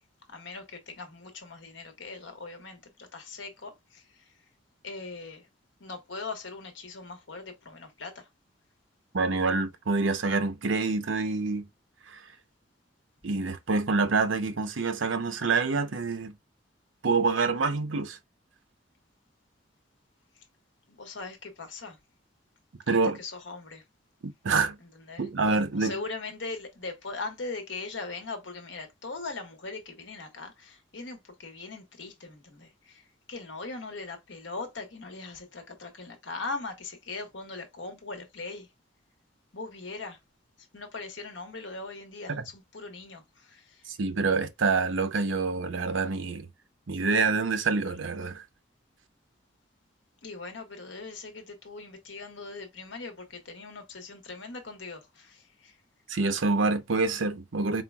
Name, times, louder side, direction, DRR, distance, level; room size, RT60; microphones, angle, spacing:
voice 1, 0.3-4.3 4.8-5.5 5.8-8.3 20.3-20.4 20.9-22.0 23.1-23.8 24.8-25.3 25.7-38.7 39.5-40.2 40.7-43.9 50.2-55.8, left 3 dB, 70° left, 1.3 m, -40 dB
voice 2, 9.1-11.7 12.1-12.2 13.2-16.3 17.0-18.2 22.9-23.2 24.2-24.8 25.2-25.9 42.3-42.4 44.0-46.5 46.9-48.4 56.1-57.8, right 4 dB, 90° right, 0.7 m, -26 dB
4.4 x 3.8 x 2.3 m
head